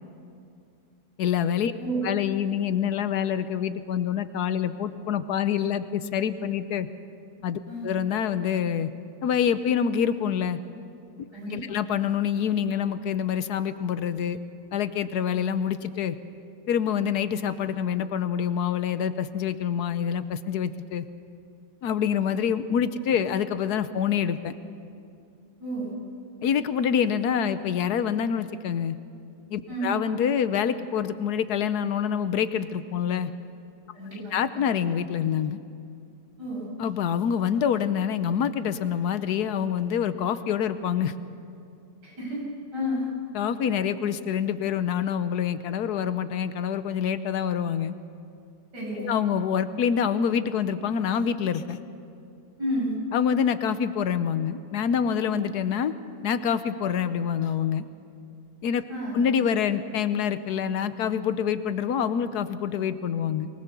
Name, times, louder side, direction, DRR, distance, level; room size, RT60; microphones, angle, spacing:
voice 1, 1.2-1.7 2.0-6.9 7.4-8.9 9.2-10.6 11.5-14.4 14.7-16.2 16.7-21.0 21.8-24.5 26.4-29.0 29.5-33.3 34.3-35.6 36.8-41.1 43.3-47.9 49.0-51.8 53.1-56.0 56.2-57.8 58.6-58.8 59.1-63.5, left 8 dB, 75° left, 12 dB, 1.3 m, -26 dB
voice 2, 11.3-11.8 25.6-25.9 29.7-29.9 33.9-34.4 36.4-36.7 42.0-42.4 42.7-43.1 48.7-49.2 52.6-53.0 58.9-59.2, equal, 85° right, -5 dB, 7.7 m, -31 dB
23.5 x 19.5 x 6.9 m, 2.5 s
omnidirectional pair, 1.8 m